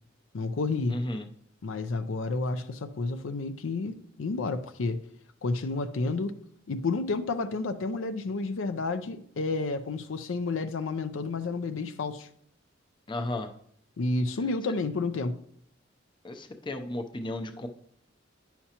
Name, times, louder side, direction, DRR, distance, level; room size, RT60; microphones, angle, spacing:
voice 1, 0.3-1.0 1.6-5.0 5.4-6.4 6.7-12.3 14.0-15.4, left 3 dB, 80° left, 0.5 m, -30 dB
voice 2, 0.9-1.3 13.1-13.5 16.2-17.7, left 1 dB, 25° left, 0.6 m, -34 dB
9.8 x 5.7 x 2.9 m
head